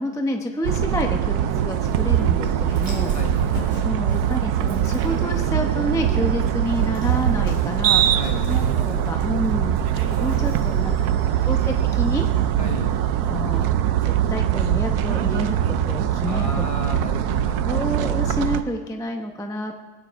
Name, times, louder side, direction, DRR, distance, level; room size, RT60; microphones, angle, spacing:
voice 1, 0.0-3.1 3.8-8.2 8.5-9.8 10.2-11.1 11.5-12.3 13.3-13.7 14.0-15.6 15.8-16.5 17.6-19.7, equal, 5° left, 3 dB, 0.5 m, -28 dB
sound 1, 0.6-18.6, right 10 dB, 75° right, 1.1 m, -22 dB
Dog, 1.6-13.6, right 1 dB, 50° right, 3.6 m, -40 dB
voice 2, 3.1-3.5 8.2-8.6 10.3-11.5 12.6-13.0 16.3-17.9, left 2 dB, 25° left, 3 dB, 0.9 m, -34 dB
20.5 x 9.7 x 4.7 m, 1.3 s
omnidirectional pair, 1.8 m